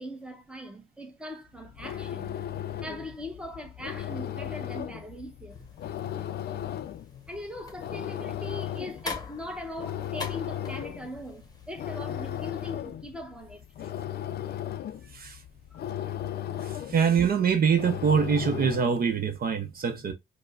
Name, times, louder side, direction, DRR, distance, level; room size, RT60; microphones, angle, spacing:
voice 1, 0.0-2.4 2.8-5.6 7.3-13.6 15.0-15.2 15.7-16.1, left 1 dB, 5° right, 0.9 m, -40 dB
sound 1, 1.6-19.1, left 11 dB, 55° left, 0.4 m, -36 dB
sound 2, 5.5-12.5, left 4 dB, 20° left, 0.9 m, -44 dB
voice 2, 16.6-20.1, right 6 dB, 50° right, 0.6 m, -24 dB
4.6 x 2.1 x 2.3 m
cardioid pair, 90°, 20 cm